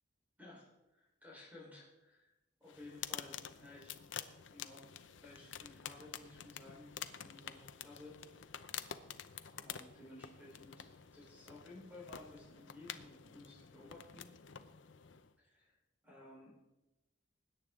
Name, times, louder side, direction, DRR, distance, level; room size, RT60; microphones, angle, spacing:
voice 1, 0.4-2.3 2.6-3.9 4.5-4.9 5.2-8.2 9.5-14.4 15.4-15.8 16.0-16.5, left 2 dB, 10° right, -4 dB, 4.1 m, -56 dB
sound 1, 2.7-15.3, left 9 dB, 85° left, 0.7 m, -49 dB
20.5 x 9.4 x 3.7 m, 0.99 s
head